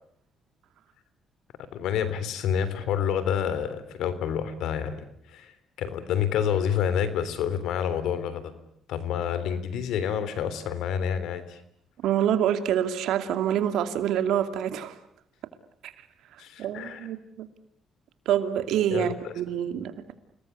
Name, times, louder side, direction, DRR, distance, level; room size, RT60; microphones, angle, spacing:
voice 1, 1.7-8.5 8.9-11.6 16.4-17.1 18.9-19.3, left 8 dB, 85° left, 14 dB, 3.4 m, -28 dB
voice 2, 12.0-15.0 15.8-15.9 16.6-17.5 18.3-20.1, right 10 dB, 85° right, 9 dB, 2.6 m, -26 dB
29.5 x 19.5 x 9.7 m, 0.69 s
cardioid pair, 90°, 0 cm